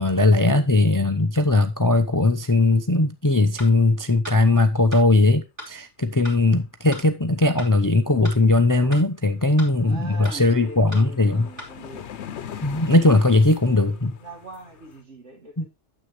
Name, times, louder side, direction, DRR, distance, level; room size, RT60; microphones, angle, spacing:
voice 1, 0.0-11.4 12.6-14.1 15.6-15.7, left 2 dB, 25° left, 0.4 m, -19 dB
sound 1, 3.6-3.7 4.2-4.4 4.9-5.1 5.6-5.7 6.2-6.4 6.9-7.1 7.6-7.7 8.2-8.4 8.9-9.1 9.6-9.7 10.2-10.4 10.9-11.1 11.6-11.7, left 1 dB, 45° right, 3.0 m, -37 dB
sound 2, 8.9-9.0 9.3-15.0, left 9 dB, 70° left, 1.0 m, -41 dB
voice 2, 9.8-12.1 12.8-15.7, right 2 dB, 75° right, 2.8 m, -42 dB
9.5 x 7.6 x 3.1 m
omnidirectional pair, 1.2 m